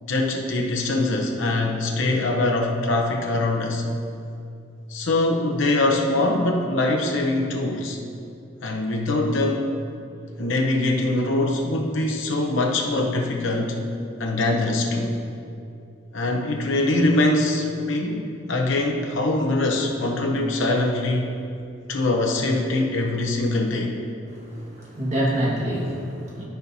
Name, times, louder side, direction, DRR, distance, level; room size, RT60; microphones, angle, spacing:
voice 1, 0.0-3.8 4.9-8.0 8.6-9.7 10.4-13.8 14.2-15.1 16.1-21.3 21.9-23.9, left 2 dB, 75° left, 1 dB, 0.9 m, -23 dB
voice 2, 24.4-26.4, right 1 dB, 35° right, -5 dB, 1.7 m, -26 dB
13.0 x 5.8 x 2.8 m, 2.5 s
head